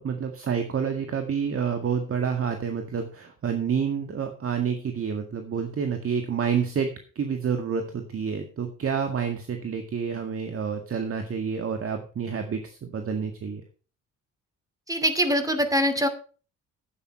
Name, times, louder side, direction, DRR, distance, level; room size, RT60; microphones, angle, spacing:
voice 1, 0.0-13.6, right 7 dB, 50° right, 6 dB, 1.9 m, -28 dB
voice 2, 14.9-16.1, equal, 10° right, 9 dB, 2.6 m, -23 dB
11.5 x 8.6 x 4.6 m, 0.37 s
cardioid pair, 90°, 30 cm